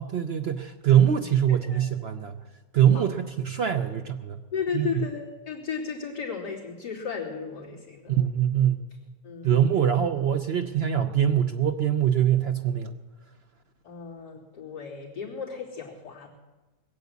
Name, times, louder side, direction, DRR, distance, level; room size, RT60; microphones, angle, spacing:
voice 1, 0.0-2.4 2.7-4.4 4.7-5.1 8.1-8.8 9.4-12.9, right 9 dB, 85° right, 6 dB, 0.5 m, -23 dB
voice 2, 4.5-8.1 9.2-9.6 13.8-16.3, left 6 dB, 65° left, -4 dB, 3.7 m, -34 dB
20.5 x 8.2 x 8.2 m, 1.2 s
omnidirectional pair, 1.9 m